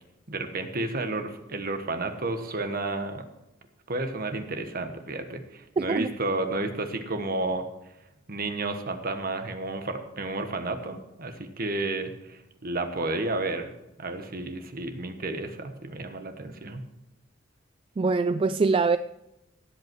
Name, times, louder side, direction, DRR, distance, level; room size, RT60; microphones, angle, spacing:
voice 1, 0.3-3.2 3.9-7.7 8.3-13.7 14.0-16.8, right 2 dB, 50° right, 1.4 m, -31 dB
voice 2, 5.8-6.1 18.0-19.0, right 4 dB, 30° right, 0.3 m, -23 dB
17.0 x 8.2 x 4.7 m
head